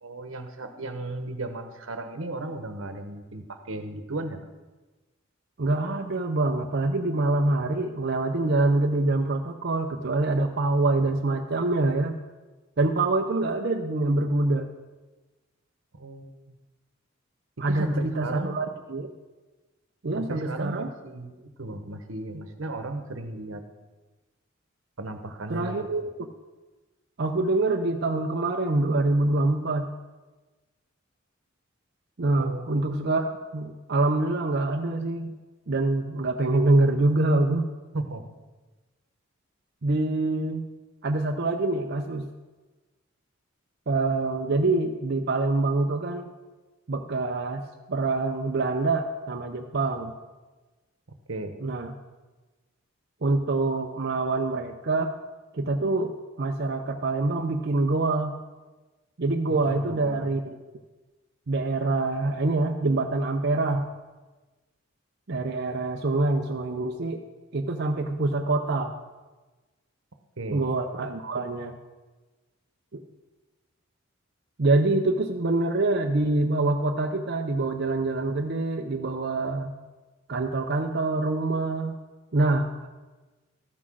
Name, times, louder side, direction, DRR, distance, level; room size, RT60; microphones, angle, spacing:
voice 1, 0.0-4.4 16.0-16.5 17.6-18.6 20.1-23.6 25.0-26.1 32.3-32.7 37.9-38.3 51.3-51.6 59.5-60.3 70.4-70.6, right 2 dB, 85° right, 7 dB, 1.1 m, -35 dB
voice 2, 5.6-12.1 12.8-14.7 17.6-19.1 20.0-20.9 25.5-26.3 27.2-29.9 32.2-35.3 35.7-37.7 39.8-40.6 41.0-42.3 43.9-46.3 46.9-47.6 47.9-50.1 51.6-51.9 53.2-55.2 55.5-56.1 56.4-58.4 59.2-60.6 61.5-63.9 65.3-67.2 67.5-68.9 70.5-71.7 72.9-73.0 74.6-79.7 80.3-82.0 82.3-82.9, right 2 dB, 55° right, 2 dB, 0.6 m, -25 dB
13.5 x 6.0 x 6.2 m, 1.2 s
head